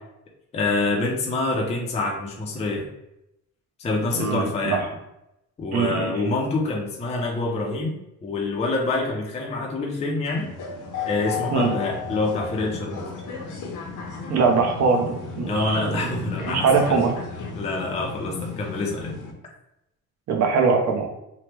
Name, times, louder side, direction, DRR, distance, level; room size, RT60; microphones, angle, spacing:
voice 1, 0.5-2.9 3.8-4.8 5.6-8.0 8.2-10.5 11.0-13.1 15.5-16.7 17.6-19.1, left 2 dB, 20° left, -1 dB, 0.4 m, -26 dB
voice 2, 4.2-4.9 5.7-6.1 11.5-11.7 14.3-17.1 20.3-21.1, right 5 dB, 55° right, 2 dB, 0.6 m, -22 dB
sound 1, 10.3-19.3, left 5 dB, 65° left, 0.7 m, -34 dB
2.9 x 2.0 x 3.2 m, 0.84 s
cardioid pair, 140°, 32 cm